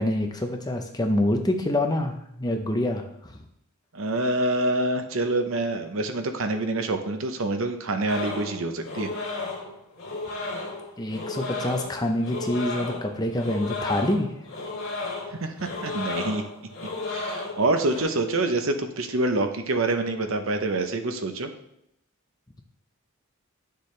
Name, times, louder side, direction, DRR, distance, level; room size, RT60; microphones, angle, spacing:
voice 1, 0.0-3.4 11.0-14.3, left 1 dB, 20° left, 4 dB, 0.7 m, -26 dB
voice 2, 3.9-9.1 15.4-16.4 17.1-21.5, right 2 dB, 70° right, 7 dB, 0.8 m, -26 dB
sound 1, 8.1-18.0, left 3 dB, 65° left, 1.9 m, -33 dB
9.6 x 6.8 x 3.3 m, 0.76 s
head